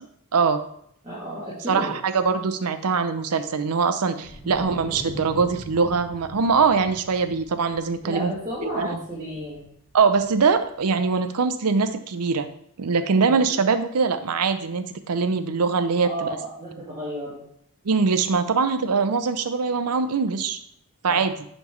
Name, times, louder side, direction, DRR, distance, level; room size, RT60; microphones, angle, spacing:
voice 1, 0.3-0.6 1.7-8.3 8.8-8.9 9.9-12.5 12.8-16.4 17.8-20.6 21.0-21.3, right 5 dB, 90° right, 10 dB, 0.6 m, -22 dB
voice 2, 1.0-1.9 4.4-4.5 8.0-9.7 13.2-13.4 16.0-17.4 21.1-21.2, equal, 20° right, -11 dB, 2.3 m, -32 dB
Wind, 4.2-10.7, equal, 30° left, 1.3 m, -42 dB
9.8 x 4.3 x 3.1 m, 0.67 s
head